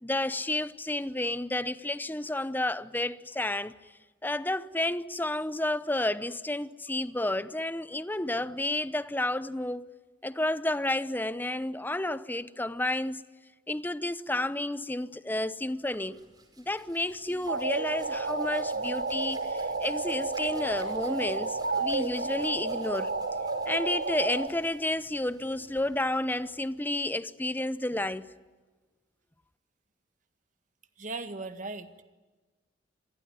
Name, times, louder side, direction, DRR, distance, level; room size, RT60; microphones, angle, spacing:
voice 1, 0.0-3.8 4.2-9.9 10.2-13.2 13.7-16.2 16.6-23.1 23.7-28.3, left 1 dB, 10° left, 0.8 m, -31 dB
Hands, 15.7-27.1, right 2 dB, 20° right, 5.0 m, -54 dB
sound 1, 17.5-24.5, right 3 dB, 70° right, 2.3 m, -31 dB
voice 2, 31.0-32.0, right 3 dB, 45° right, 1.8 m, -38 dB
28.0 x 21.5 x 9.5 m
head